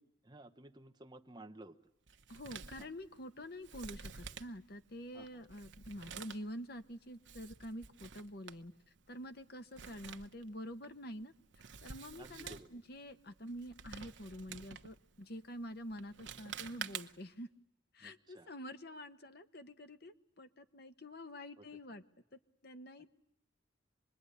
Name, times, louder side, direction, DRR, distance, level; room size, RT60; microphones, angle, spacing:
voice 1, 0.0-1.8 2.8-2.9 5.1-5.5 12.2-12.7 18.0-18.5 21.6-21.7, right 2 dB, 20° right, 6 dB, 1.0 m, -55 dB
Male speech man speaking, 2.1-17.4, right 7 dB, 65° right, 1.1 m, -51 dB
voice 2, 2.3-8.7 9.1-11.3 11.8-17.5 17.9-22.0 22.3-23.1, equal, 55° left, 9 dB, 1.3 m, -47 dB
26.5 x 21.5 x 10.0 m, 0.86 s
head